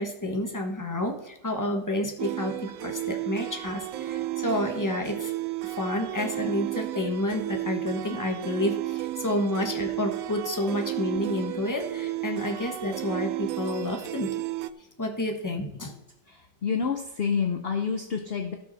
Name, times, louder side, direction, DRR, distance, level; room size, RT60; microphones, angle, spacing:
voice 1, 0.0-5.3 5.6-14.3 15.0-15.9, left 1 dB, 10° left, 3 dB, 1.4 m, -30 dB
sound 1, 2.2-14.7, right 15 dB, 70° right, 0.9 m, -33 dB
voice 2, 16.3-18.6, left 6 dB, 45° left, 5 dB, 0.8 m, -28 dB
17.5 x 6.0 x 4.2 m, 0.87 s
omnidirectional pair, 1.8 m